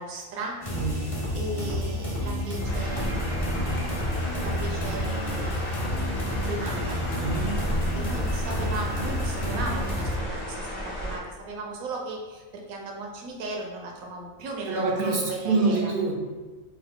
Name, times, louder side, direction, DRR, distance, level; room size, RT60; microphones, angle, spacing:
voice 1, 0.0-0.6 0.9-3.4 4.4-6.0 6.4-7.0 8.0-15.8, right 3 dB, 80° right, 0 dB, 1.2 m, -36 dB
sound 1, 0.6-10.2, left 1 dB, 30° left, 0.9 m, -30 dB
voice 2, 0.7-1.1 7.2-7.6 14.7-16.2, right 3 dB, 55° right, -2 dB, 0.7 m, -26 dB
sound 2, 2.6-11.2, equal, 70° left, 1.4 m, -33 dB
4.7 x 2.6 x 3.6 m, 1.3 s
omnidirectional pair, 1.4 m